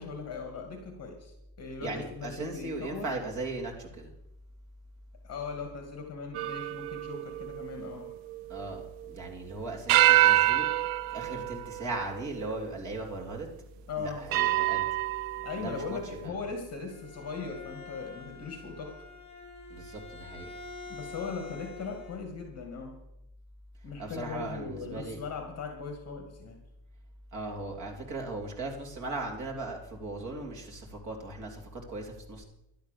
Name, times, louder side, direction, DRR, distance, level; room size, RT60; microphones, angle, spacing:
voice 1, 0.0-3.1 5.2-8.1 13.9-14.2 15.4-18.9 20.9-22.9 23.8-26.6, left 4 dB, 30° left, 4 dB, 2.3 m, -39 dB
voice 2, 1.8-4.1 8.5-10.7 11.1-13.5 14.0-14.9 15.6-16.3 19.7-20.5 24.0-25.2 27.3-32.4, right 2 dB, 35° right, 0 dB, 3.3 m, -38 dB
sound 1, 6.3-9.3 9.9-12.6 13.3-13.4 14.3-15.9, right 16 dB, 85° right, 0.6 m, -27 dB
Bowed string instrument, 16.7-22.2, left 3 dB, 10° left, 2.4 m, -46 dB
12.0 x 10.5 x 6.8 m, 0.84 s
cardioid pair, 145°, 49 cm